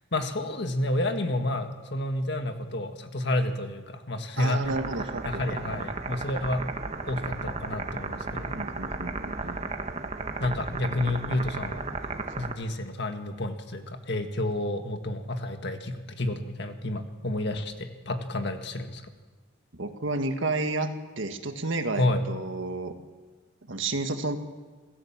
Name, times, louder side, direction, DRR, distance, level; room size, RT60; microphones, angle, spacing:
voice 1, 0.1-4.7 5.2-6.7 7.1-8.7 10.4-11.9 12.4-19.0 22.0-22.2, left 1 dB, 55° left, 6 dB, 1.8 m, -30 dB
voice 2, 4.4-5.6 8.5-9.6 19.7-23.0 23.7-24.4, right 2 dB, 70° right, 6 dB, 1.7 m, -31 dB
sound 1, 4.6-12.5, right 3 dB, 35° right, 1.4 m, -34 dB
27.0 x 15.5 x 7.4 m, 1.3 s
head